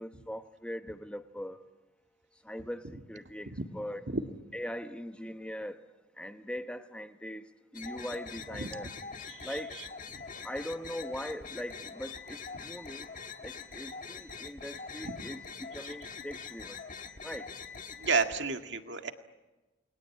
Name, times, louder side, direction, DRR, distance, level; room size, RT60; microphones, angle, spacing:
voice 1, 0.0-1.6 2.4-2.8 3.1-4.1 4.5-5.8 6.2-7.5 7.7-8.9 9.4-9.7 10.4-13.1 13.4-16.8 17.2-17.5, equal, 5° left, 1.2 m, -40 dB
sound 1, 7.7-18.4, left 5 dB, 40° left, 1.6 m, -44 dB
voice 2, 18.0-19.1, right 4 dB, 65° right, 1.9 m, -31 dB
29.5 x 21.5 x 8.6 m
head